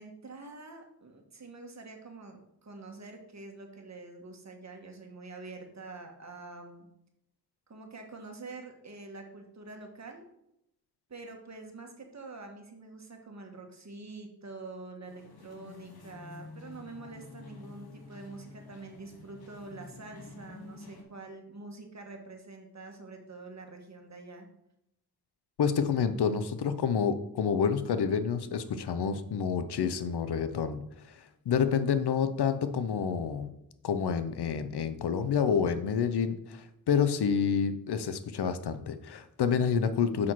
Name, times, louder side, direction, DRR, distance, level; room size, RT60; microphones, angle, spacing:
voice 1, 0.0-6.9 7.7-10.2 11.1-24.5, right 3 dB, 45° right, 3 dB, 1.5 m, -46 dB
sound 1, 15.1-21.0, left 3 dB, 70° left, 1.4 m, -49 dB
voice 2, 25.6-30.8 31.5-33.5 33.8-40.3, left 6 dB, 85° left, 11 dB, 0.7 m, -28 dB
6.1 x 6.0 x 4.6 m, 0.80 s
wide cardioid pair, 85°, 39 cm